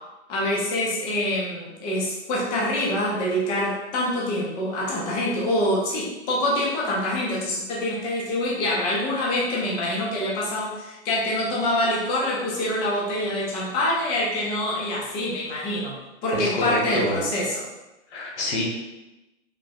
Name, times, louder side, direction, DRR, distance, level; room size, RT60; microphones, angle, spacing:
voice 1, 0.3-15.9 16.2-17.6, left 1 dB, 15° left, -5 dB, 0.3 m, -25 dB
voice 2, 16.3-17.2 18.1-18.7, left 2 dB, 75° left, -2 dB, 1.1 m, -27 dB
3.4 x 2.4 x 2.3 m, 1.0 s
hypercardioid pair, 125°, 35 cm